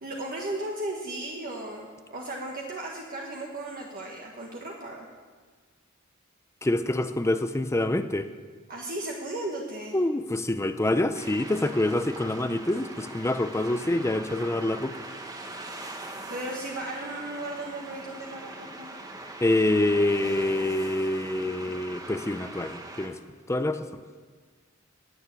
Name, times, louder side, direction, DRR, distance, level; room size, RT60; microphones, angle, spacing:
voice 1, 0.0-5.1 8.7-10.0 16.3-18.9, right 1 dB, 45° right, -1 dB, 1.5 m, -35 dB
voice 2, 6.6-8.3 9.9-15.0 19.4-23.2 23.5-23.8, left 1 dB, 15° left, 9 dB, 0.5 m, -26 dB
sound 1, 11.1-23.1, right 2 dB, 20° right, 1.3 m, -41 dB
16.5 x 7.1 x 10.0 m, 1.5 s
head